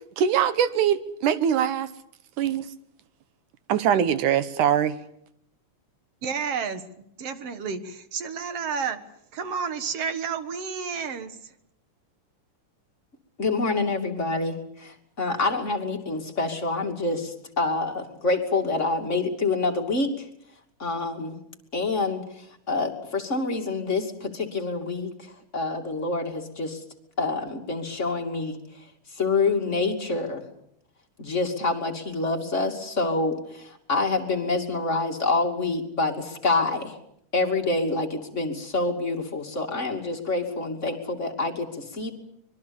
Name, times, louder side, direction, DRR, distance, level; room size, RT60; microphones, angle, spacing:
voice 1, 0.2-1.9 2.4-2.7 3.7-5.0, right 9 dB, 75° right, 2.6 m, -22 dB
voice 2, 6.2-9.0 9.3-11.5, right 6 dB, 55° right, 2.3 m, -31 dB
voice 3, 13.4-20.3 20.8-21.4 21.7-26.8 27.2-28.6 29.1-30.5 31.2-37.0 37.3-42.1, left 3 dB, 25° left, 2.7 m, -27 dB
25.0 x 22.5 x 7.1 m
omnidirectional pair, 3.6 m